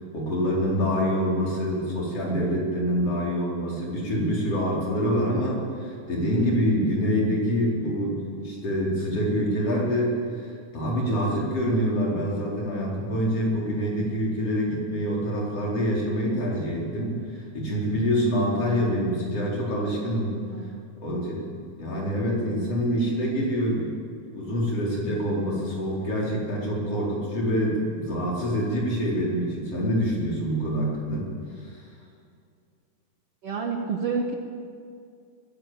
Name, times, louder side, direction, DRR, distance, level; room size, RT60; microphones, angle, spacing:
voice 1, 0.1-20.4 21.0-23.9 24.3-31.3 31.6-31.8, equal, 50° left, -3 dB, 5.4 m, -26 dB
voice 2, 20.5-20.8 33.4-34.4, right 5 dB, 55° right, 2 dB, 2.2 m, -29 dB
21.5 x 16.0 x 7.6 m, 2.3 s
omnidirectional pair, 3.6 m